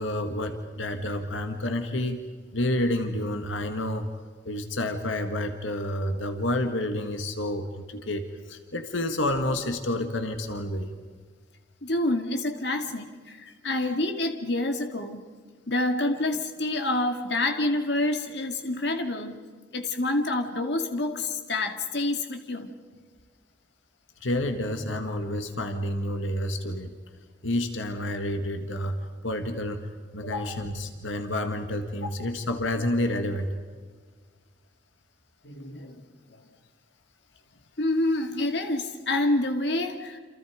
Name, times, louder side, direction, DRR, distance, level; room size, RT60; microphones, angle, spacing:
voice 1, 0.0-2.2 2.5-4.1 4.5-10.9 24.2-27.0 27.4-33.5, left 1 dB, 85° left, 7 dB, 1.9 m, -29 dB
voice 2, 11.8-15.2 15.7-19.4 19.7-22.7 30.2-30.6 35.4-36.0 37.8-40.2, left 2 dB, 60° left, 5 dB, 2.2 m, -28 dB
28.5 x 28.0 x 5.1 m, 1.5 s
head